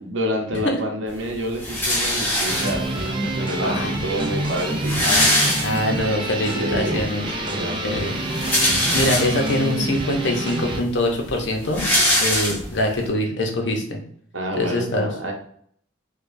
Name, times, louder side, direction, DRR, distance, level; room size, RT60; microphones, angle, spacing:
voice 1, 0.0-5.1 6.6-7.0 7.5-8.0 14.3-15.3, equal, 75° right, 2 dB, 0.8 m, -28 dB
sound 1, 1.6-3.0 3.9-4.0 4.2-4.3 4.6-6.1 6.6-6.7 8.1-9.6 10.2-10.3 10.6-13.0, left 1 dB, 10° left, 0.9 m, -22 dB
sound 2, 2.5-10.8, right 1 dB, 25° right, 0.5 m, -27 dB
voice 2, 3.6-3.9 5.0-5.3 5.6-7.3 7.8-8.1 8.9-11.9 12.2-14.0 14.6-15.1, left 1 dB, 60° left, 2 dB, 0.8 m, -23 dB
4.9 x 2.3 x 2.6 m, 0.63 s
head